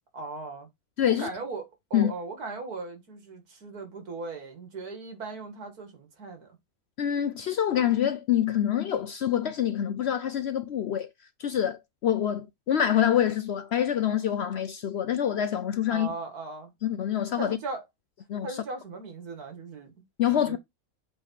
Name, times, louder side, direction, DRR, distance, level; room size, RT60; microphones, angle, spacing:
voice 1, 0.1-0.7 1.2-1.6 1.9-6.6 15.9-16.7 17.4-17.8 18.4-19.9 20.5-20.6, right 3 dB, 85° right, 2.4 m, -38 dB
voice 2, 1.0-1.3 1.9-2.1 7.0-11.1 11.4-16.1 16.8-17.6 18.3-18.6 20.2-20.6, left 10 dB, 65° left, 0.7 m, -26 dB
7.9 x 3.4 x 4.2 m
omnidirectional pair, 1.6 m